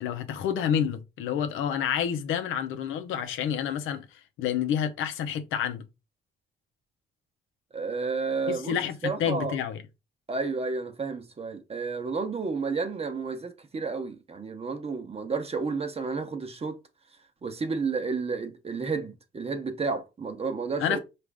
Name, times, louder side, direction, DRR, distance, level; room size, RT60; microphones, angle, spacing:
voice 1, 0.0-5.8 8.5-9.8 20.8-21.0, left 8 dB, 85° left, 0.6 m, -29 dB
voice 2, 7.7-8.8 9.0-9.6 10.3-16.8 17.4-21.0, right 4 dB, 30° right, 0.8 m, -31 dB
4.8 x 2.5 x 3.4 m
cardioid pair, 90°, 20 cm